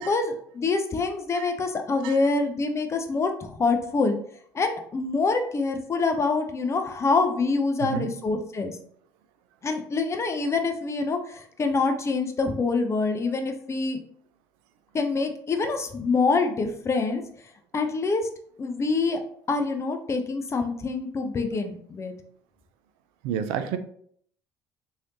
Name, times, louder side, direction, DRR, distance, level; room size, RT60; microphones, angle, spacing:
voice 1, 0.0-4.2 4.5-8.8 9.6-14.0 14.9-17.2 17.7-18.3 18.6-19.2 19.5-22.1, left 3 dB, 35° left, 6 dB, 0.6 m, -26 dB
voice 2, 23.2-23.8, right 9 dB, 75° right, 9 dB, 0.4 m, -29 dB
3.2 x 2.8 x 2.7 m, 0.62 s
hypercardioid pair, 65°, 9 cm